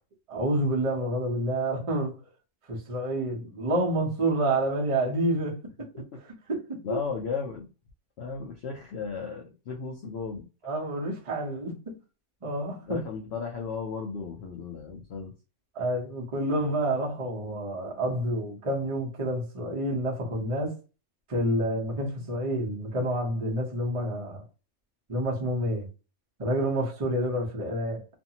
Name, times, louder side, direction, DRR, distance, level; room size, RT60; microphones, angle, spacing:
voice 1, 0.3-2.2 2.7-5.6 5.9-7.0 10.6-12.0 12.4-13.0 15.7-20.8 21.3-24.4 25.1-25.9 26.4-28.0, right 1 dB, 30° right, 0.6 m, -28 dB
voice 2, 6.8-7.6 8.2-10.5 12.9-15.3, left 5 dB, 70° left, 0.6 m, -35 dB
2.6 x 2.5 x 2.8 m
omnidirectional pair, 1.6 m